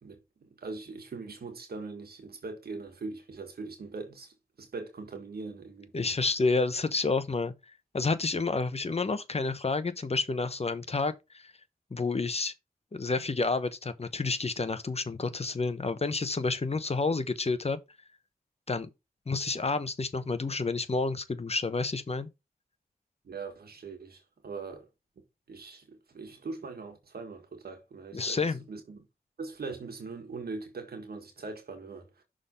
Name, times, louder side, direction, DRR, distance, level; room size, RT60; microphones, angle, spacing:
voice 1, 0.0-5.9 23.2-24.9 25.5-29.0 29.4-32.2, right 4 dB, 85° right, 1.7 m, -41 dB
voice 2, 5.9-11.5 11.9-12.5 12.9-17.8 18.7-18.9 19.3-22.3 28.1-28.6, left 3 dB, 40° left, 0.9 m, -30 dB
6.2 x 3.7 x 5.3 m
cardioid pair, 55°, 16 cm